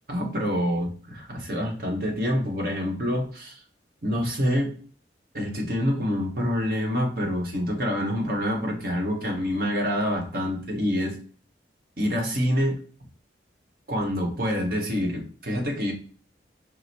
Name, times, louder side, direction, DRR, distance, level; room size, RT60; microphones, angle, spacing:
voice 1, 0.1-3.6 4.0-4.7 5.3-11.2 12.0-12.8 13.9-15.9, equal, 50° right, 1 dB, 1.0 m, -26 dB
4.7 x 2.0 x 4.2 m, 0.43 s
head